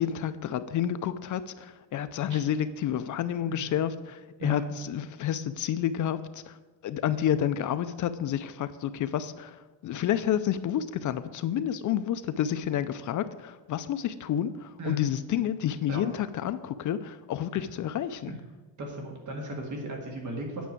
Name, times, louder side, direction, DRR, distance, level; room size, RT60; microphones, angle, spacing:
voice 1, 0.0-6.2 6.5-6.6 6.8-18.3, left 10 dB, 45° left, 12 dB, 0.5 m, -29 dB
voice 2, 18.8-20.7, right 1 dB, 45° right, 1 dB, 1.8 m, -36 dB
9.2 x 6.1 x 8.4 m, 1.2 s
cardioid pair, 170°, 43 cm